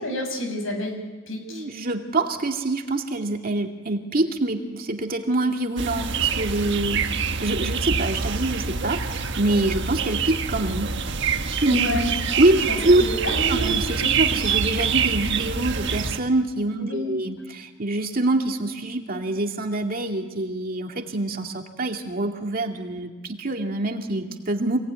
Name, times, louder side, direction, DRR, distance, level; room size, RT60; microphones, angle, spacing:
voice 1, 0.0-1.7 11.7-12.1 12.7-14.2 16.8-17.2, left 1 dB, 80° left, 5 dB, 6.0 m, -29 dB
voice 2, 1.5-7.1 7.4-10.9 11.6-12.0 12.4-13.0 13.5-24.8, right 2 dB, 45° right, 3 dB, 2.2 m, -25 dB
sound 1, 5.8-16.2, right 6 dB, 60° right, 1.4 m, -26 dB
27.0 x 18.5 x 9.6 m, 1.3 s
head